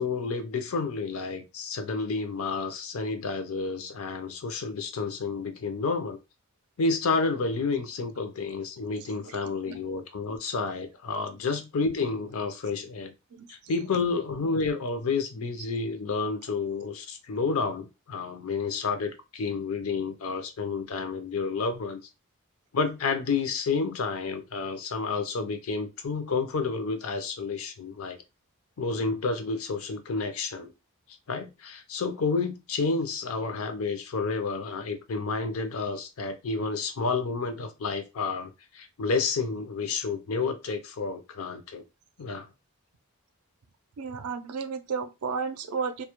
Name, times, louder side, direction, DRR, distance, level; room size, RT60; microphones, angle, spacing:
voice 1, 0.0-6.2 6.8-13.1 13.5-22.0 22.7-28.2 28.8-30.7 31.3-41.8 42.2-42.5, left 4 dB, 70° left, 0.5 m, -30 dB
voice 2, 44.0-46.0, right 5 dB, 80° right, 0.4 m, -32 dB
2.2 x 2.1 x 2.9 m
head